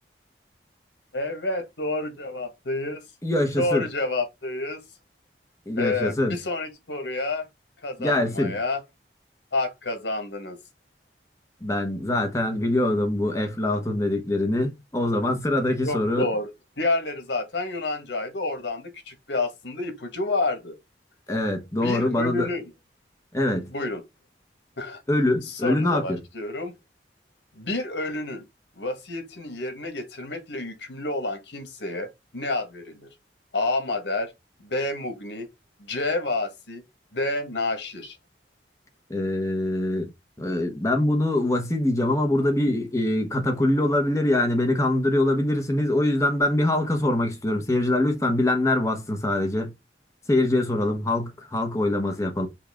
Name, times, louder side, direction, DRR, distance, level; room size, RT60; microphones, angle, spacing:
voice 1, 1.1-3.0 3.6-4.8 5.8-7.5 7.8-8.8 9.5-10.6 15.8-16.5 16.8-20.8 21.8-22.7 23.7-24.0 24.8-25.0 25.4-26.7 27.5-28.4 28.8-33.1 33.5-34.3 34.6-35.5 35.8-36.8 37.1-38.2, left 2 dB, 85° left, 1.4 m, -29 dB
voice 2, 3.2-3.9 5.7-6.4 8.0-8.6 11.6-16.3 21.3-22.5 23.3-23.7 25.1-26.2 39.1-40.1 40.4-49.7 50.3-52.5, left 1 dB, 15° left, 1.0 m, -24 dB
5.5 x 2.5 x 3.5 m
head